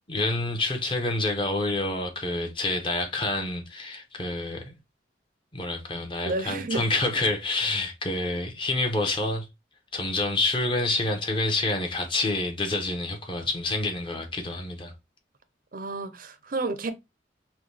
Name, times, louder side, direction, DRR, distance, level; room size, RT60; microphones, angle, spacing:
voice 1, 0.1-4.7 5.5-9.5 9.9-14.9, left 2 dB, 25° left, 0.9 m, -28 dB
voice 2, 6.3-6.8 15.7-16.9, right 3 dB, 45° right, 0.6 m, -30 dB
5.7 x 2.3 x 3.2 m
head